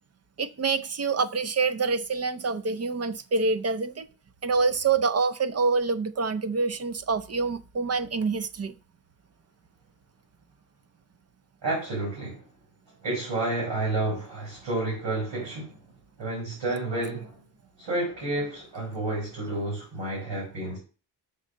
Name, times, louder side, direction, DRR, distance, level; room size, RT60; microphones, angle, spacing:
voice 1, 0.4-4.1 4.4-8.7, right 4 dB, 35° right, 0.6 m, -26 dB
voice 2, 11.6-12.4 13.0-15.8 16.2-17.4 17.8-20.8, right 2 dB, 80° right, 4.7 m, -30 dB
6.6 x 4.0 x 6.3 m
cardioid pair, 100°, 43 cm